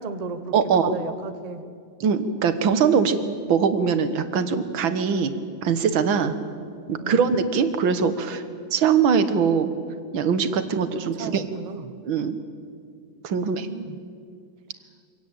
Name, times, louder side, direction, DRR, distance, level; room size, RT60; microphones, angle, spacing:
voice 1, 0.0-0.5 0.8-1.6 6.2-6.3 7.0-7.3 10.9-11.9 13.4-14.0, right 4 dB, 30° right, 9 dB, 0.8 m, -35 dB
voice 2, 0.5-1.0 2.0-3.2 3.5-5.3 5.6-6.4 6.9-8.4 8.7-9.7 10.1-11.4 12.1-12.4 13.2-13.7, right 6 dB, 85° right, 10 dB, 2.0 m, -22 dB
24.5 x 17.5 x 8.7 m, 2.3 s
omnidirectional pair, 2.1 m